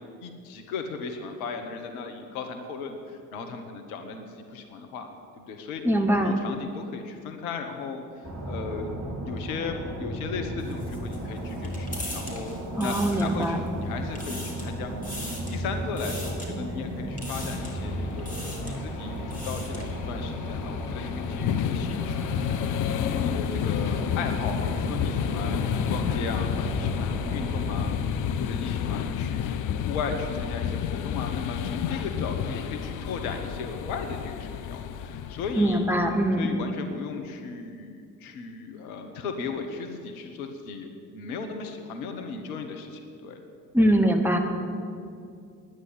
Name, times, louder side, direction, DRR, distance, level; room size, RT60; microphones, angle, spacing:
voice 1, 0.0-5.1 5.4-5.8 6.2-9.0 9.2-22.5 23.0-27.9 28.4-35.9 36.4-43.4, left 4 dB, 70° left, 6 dB, 1.2 m, -36 dB
voice 2, 5.8-6.4 12.8-13.6 35.6-36.5 43.7-44.4, right 1 dB, 5° right, 2 dB, 1.6 m, -22 dB
sound 1, 8.2-28.0, right 1 dB, 35° right, 2.8 m, -35 dB
sound 2, 10.6-13.7 14.0-14.7 15.0-15.6 16.0-16.5 17.2-17.8 18.2-18.8 19.2-19.9, left 1 dB, 20° left, 3.7 m, -40 dB
sound 3, 17.2-36.3, left 8 dB, 45° left, 0.7 m, -31 dB
9.8 x 9.3 x 9.6 m, 2.4 s
figure-of-eight pair, 45°, 45 cm